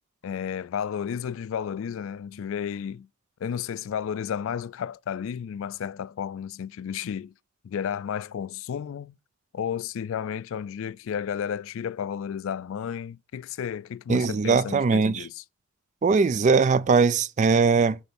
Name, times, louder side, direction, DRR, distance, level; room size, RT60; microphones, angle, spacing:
voice 1, 0.2-3.1 3.4-7.3 7.6-9.2 9.5-15.4, left 8 dB, 60° left, 0.3 m, -32 dB
voice 2, 14.1-15.3 16.0-18.0, right 4 dB, 35° right, 0.3 m, -20 dB
8.9 x 3.5 x 5.7 m
head